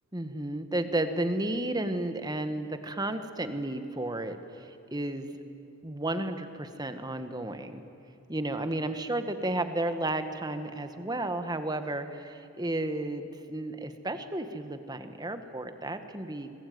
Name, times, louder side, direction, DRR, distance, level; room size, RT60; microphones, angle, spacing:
voice 1, 0.1-5.4 5.8-7.8 8.3-16.5, right 1 dB, 20° right, 9 dB, 1.5 m, -33 dB
28.0 x 21.0 x 9.5 m, 3.0 s
head